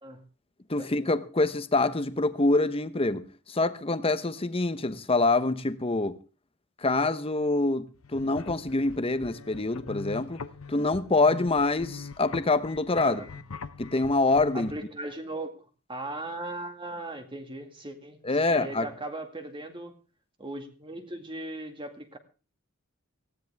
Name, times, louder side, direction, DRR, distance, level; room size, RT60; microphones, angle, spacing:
voice 1, 0.7-6.2 6.8-7.9 8.1-10.4 10.7-13.2 13.8-14.7 18.2-18.9, left 2 dB, 25° left, 1.0 m, -25 dB
sound 1, 8.0-14.7, left 4 dB, 75° left, 0.8 m, -42 dB
voice 2, 14.5-20.0 20.4-22.2, right 2 dB, 25° right, 2.0 m, -38 dB
18.5 x 16.0 x 3.5 m
head